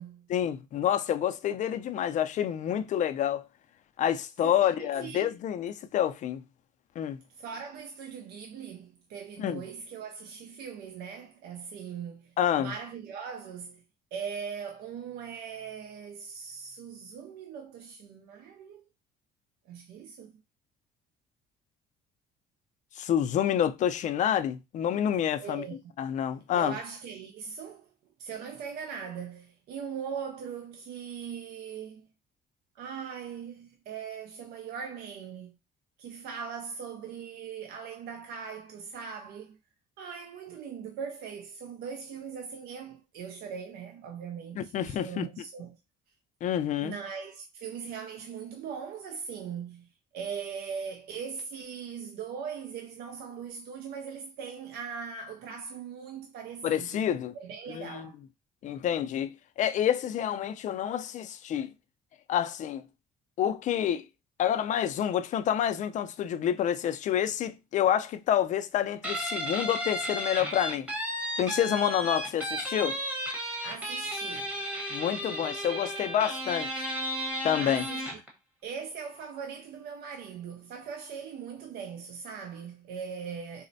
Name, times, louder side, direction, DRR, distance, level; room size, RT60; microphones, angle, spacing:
voice 1, 0.3-3.4 4.0-6.4 7.0-7.2 9.4-9.6 12.4-12.7 23.0-25.6 26.0-26.8 44.6-45.3 46.4-47.0 56.6-57.3 57.7-58.1 58.6-61.7 62.3-62.8 63.4-64.1 64.4-70.9 71.4-73.0 74.9-76.9 77.4-77.9, left 10 dB, 45° left, 0.4 m, -28 dB
voice 2, 4.4-5.3 7.3-13.8 14.1-18.8 19.7-20.4 25.4-25.8 26.5-27.9 28.2-32.1 32.7-35.6 36.0-39.6 40.0-45.8 46.8-57.0 57.3-58.2 73.6-74.6 77.6-78.2 78.6-83.7, right 6 dB, 70° right, 0.4 m, -40 dB
Guitar, 69.0-78.3, equal, 10° right, 1.0 m, -34 dB
4.0 x 2.1 x 2.6 m
cardioid pair, 110°, 17 cm